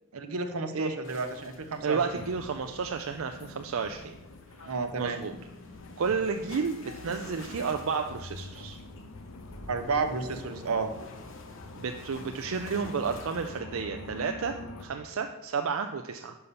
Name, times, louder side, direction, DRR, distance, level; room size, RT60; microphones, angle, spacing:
voice 1, 0.1-2.0 4.6-5.2 9.7-10.9, right 4 dB, 90° right, 8 dB, 0.8 m, -31 dB
sound 1, 1.0-13.6, left 2 dB, 60° left, 0.9 m, -50 dB
voice 2, 1.8-4.2 4.6-5.3 6.0-8.8 11.8-16.4, right 5 dB, 70° right, 6 dB, 0.4 m, -32 dB
sound 2, 2.2-14.9, left 3 dB, 85° left, 0.7 m, -46 dB
5.6 x 5.4 x 6.8 m, 1.0 s
head